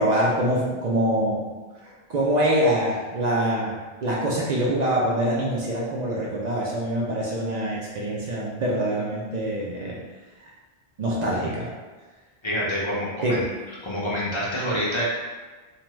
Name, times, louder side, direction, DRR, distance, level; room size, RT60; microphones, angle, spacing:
voice 1, 0.0-1.5 1.8-10.0 10.4-10.5 11.0-11.7 13.2-13.3, right 1 dB, 55° right, -5 dB, 0.5 m, -25 dB
voice 2, 12.4-13.5 13.8-15.0, equal, 35° left, -6 dB, 0.5 m, -27 dB
2.8 x 2.2 x 3.0 m, 1.3 s
omnidirectional pair, 1.1 m